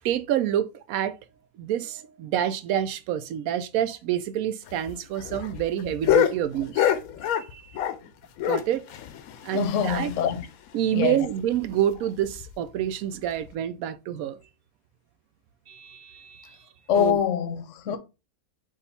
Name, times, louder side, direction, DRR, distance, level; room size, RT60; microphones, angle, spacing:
voice 1, 0.0-1.2 1.6-6.9 7.5-7.6 8.5-8.8 9.4-10.1 10.7-14.4 15.7-16.6 17.0-17.2 17.9-18.0, right 10 dB, 80° right, 1.0 m, -27 dB
sound 1, 4.7-8.1 8.4-10.4 10.7-10.8 11.1-11.2 11.5-11.7 12.2-12.5 13.4-13.5, left 10 dB, 90° left, 1.1 m, -26 dB
voice 2, 9.5-10.5 10.9-11.3 16.9-18.0, left 9 dB, 65° left, 0.9 m, -25 dB
5.0 x 2.4 x 4.1 m
omnidirectional pair, 1.5 m